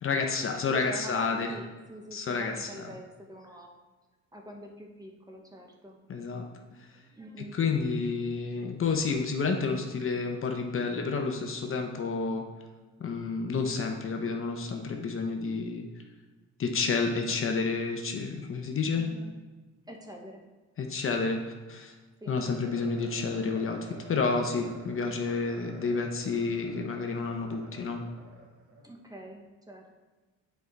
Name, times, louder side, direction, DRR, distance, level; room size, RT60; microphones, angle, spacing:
voice 1, 0.0-1.5 2.1-2.9 6.1-6.5 7.5-12.4 13.0-15.8 16.6-19.2 20.8-21.9 22.3-28.0, left 4 dB, 45° left, 3 dB, 0.9 m, -30 dB
voice 2, 0.7-3.7 4.3-6.0 7.1-7.6 18.9-19.4 19.9-20.4 22.2-22.4 28.8-29.9, equal, 10° right, 1 dB, 1.1 m, -45 dB
sound 1, 22.4-28.8, right 1 dB, 50° right, 1.9 m, -49 dB
8.3 x 4.7 x 4.0 m, 1.3 s
cardioid pair, 90°, 30 cm